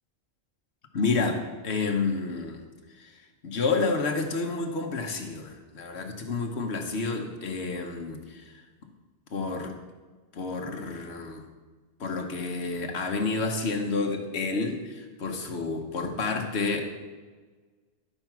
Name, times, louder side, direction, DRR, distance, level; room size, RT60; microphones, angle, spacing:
voice 1, 0.9-2.6 3.0-3.1 3.4-8.4 9.3-9.7 10.3-11.4 12.0-16.9, left 3 dB, 70° left, 3 dB, 1.3 m, -29 dB
11.5 x 4.5 x 5.9 m, 1.3 s
omnidirectional pair, 1.2 m